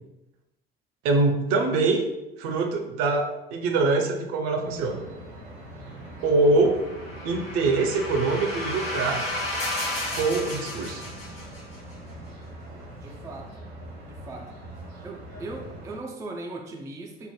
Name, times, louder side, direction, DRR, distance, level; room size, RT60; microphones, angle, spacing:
voice 1, 1.0-2.0 2.4-5.1 6.2-6.8 7.2-9.2 10.1-11.1, right 3 dB, 50° right, 3 dB, 0.6 m, -24 dB
sound 1, 4.6-16.0, right 1 dB, 75° right, 1.1 m, -42 dB
sound 2, 6.5-11.8, left 1 dB, 70° left, 1.1 m, -33 dB
voice 2, 13.0-13.6 14.0-14.5 15.0-17.3, right 2 dB, 10° right, 1 dB, 0.3 m, -39 dB
5.5 x 2.0 x 3.0 m, 0.95 s
figure-of-eight pair, 60°, 31 cm